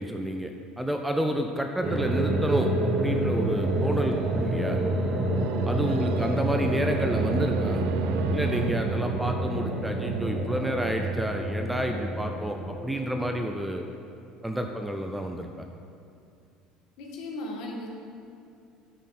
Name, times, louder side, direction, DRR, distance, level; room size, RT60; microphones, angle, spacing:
voice 1, 0.0-4.8 5.6-7.8 8.3-13.8 14.4-15.7, equal, 5° right, 4 dB, 0.3 m, -30 dB
sound 1, 1.8-13.9, right 1 dB, 35° right, 1.0 m, -28 dB
voice 2, 5.0-5.3 17.0-17.9, left 1 dB, 60° left, 0 dB, 1.5 m, -37 dB
sound 2, 5.4-10.1, right 6 dB, 80° right, 0.3 m, -33 dB
10.0 x 6.3 x 4.2 m, 2.5 s
cardioid pair, 170°, 0 cm